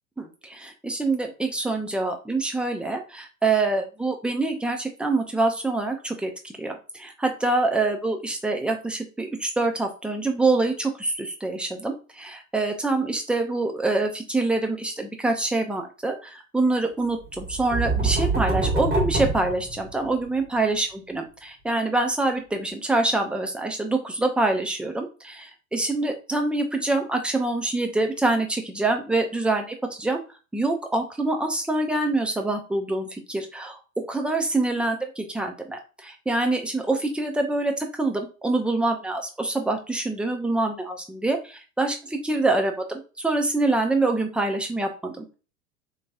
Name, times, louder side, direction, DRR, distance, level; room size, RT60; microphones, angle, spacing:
voice 1, 0.2-30.2 30.5-42.0 42.2-45.3, right 2 dB, 5° right, 4 dB, 0.5 m, -25 dB
sound 1, 17.3-20.3, right 3 dB, 25° right, 1.6 m, -25 dB
4.1 x 3.0 x 2.3 m, 0.33 s
hypercardioid pair, 85°, 41 cm